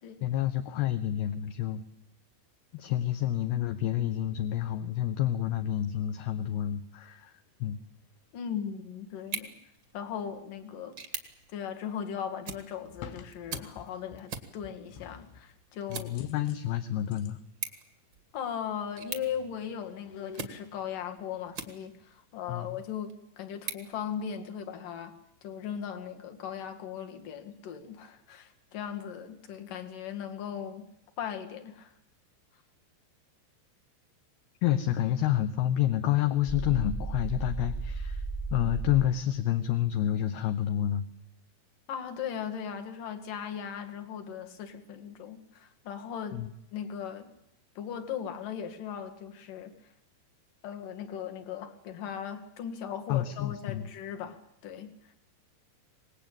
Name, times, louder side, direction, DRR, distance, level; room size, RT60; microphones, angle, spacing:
voice 1, 0.2-1.8 2.7-7.3 7.6-7.8 15.9-17.4 22.5-22.7 34.6-38.2 38.5-41.0 46.3-46.5 53.1-53.8, left 12 dB, 70° left, 8 dB, 2.6 m, -29 dB
sound 1, 6.7-6.9 7.8-8.0 8.3-10.1 12.5-14.4 14.6-15.6 16.1-17.4 18.3-18.4 18.6-20.9 21.2-22.0 22.3-22.5, left 7 dB, 85° left, 4.2 m, -51 dB
voice 2, 8.3-9.5 9.9-11.0 11.5-16.1 18.3-25.1 25.4-30.9 31.2-31.9 41.9-46.4 46.7-47.3 47.8-49.7 50.6-55.1, left 8 dB, 55° left, 6 dB, 3.2 m, -38 dB
sound 2, 9.2-22.2 22.7-24.7, right 6 dB, 60° right, 1.2 m, -45 dB
sound 3, 36.5-39.1, right 3 dB, 20° left, 2.0 m, -34 dB
26.0 x 19.5 x 8.8 m, 0.80 s
omnidirectional pair, 5.4 m